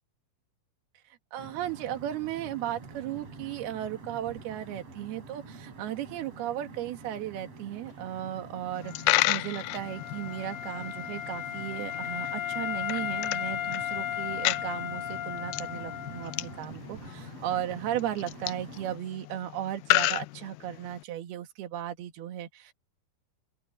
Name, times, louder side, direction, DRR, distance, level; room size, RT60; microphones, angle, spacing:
voice 1, 1.3-22.7, right 12 dB, 80° right, 3.6 m, -36 dB
sound 1, 1.4-19.0, right 3 dB, 40° right, 4.5 m, -47 dB
Coin (dropping), 8.8-21.0, left 19 dB, 80° left, 2.2 m, -33 dB
Wind instrument woodwind instrument, 8.8-16.6, left 11 dB, 60° left, 1.9 m, -35 dB
open air
omnidirectional pair, 4.5 m